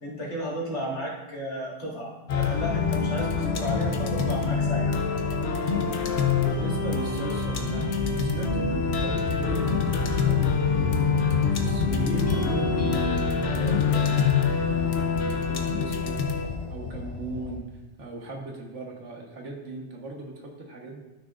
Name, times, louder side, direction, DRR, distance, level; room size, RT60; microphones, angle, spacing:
voice 1, 0.0-5.0, equal, 80° left, -5 dB, 2.3 m, -33 dB
sound 1, 2.3-17.6, left 5 dB, 65° left, 1.0 m, -25 dB
voice 2, 6.3-10.9 11.5-16.3 16.7-17.7 18.0-21.0, right 2 dB, 90° right, 0 dB, 1.6 m, -37 dB
sound 2, 12.3-16.4, left 1 dB, 30° left, 2.4 m, -36 dB
12.5 x 6.2 x 2.5 m, 1.1 s
omnidirectional pair, 1.2 m